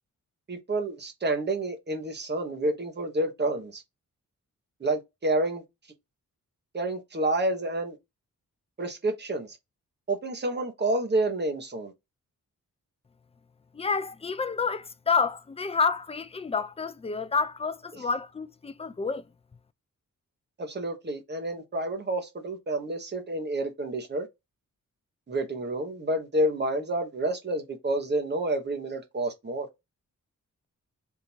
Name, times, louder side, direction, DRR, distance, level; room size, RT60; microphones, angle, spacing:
voice 1, 0.5-3.8 4.8-5.6 6.7-8.0 8.8-9.6 10.1-11.9 20.6-24.3 25.3-29.7, right 1 dB, 35° right, 1.1 m, -29 dB
voice 2, 13.7-19.2, left 5 dB, 20° left, 0.4 m, -29 dB
3.7 x 2.6 x 4.4 m
wide cardioid pair, 150°, 32 cm